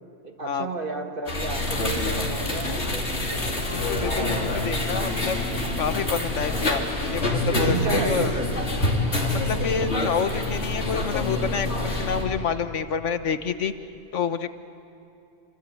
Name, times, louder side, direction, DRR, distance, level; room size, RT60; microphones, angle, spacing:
voice 1, 0.2-3.4 4.0-5.1 7.7-8.4, right 3 dB, 45° right, 4 dB, 2.0 m, -33 dB
sound 1, 1.3-12.2, left 1 dB, 65° left, 3.4 m, -26 dB
voice 2, 3.7-5.4 5.8-8.3 9.2-13.7 14.1-14.5, left 6 dB, 85° left, 10 dB, 1.4 m, -28 dB
27.0 x 25.5 x 8.5 m, 2.7 s
omnidirectional pair, 1.2 m